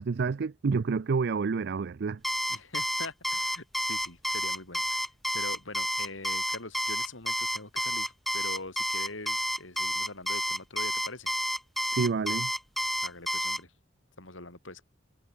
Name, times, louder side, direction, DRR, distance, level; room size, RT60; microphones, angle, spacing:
voice 1, 0.0-2.2 11.9-12.5, right 5 dB, 60° right, 0.4 m, -28 dB
Alarm, 2.2-13.6, equal, ahead, 1.1 m, -30 dB
voice 2, 2.5-5.1 5.3-11.3 13.0-13.7 14.2-14.8, left 2 dB, 80° left, 6.4 m, -43 dB
head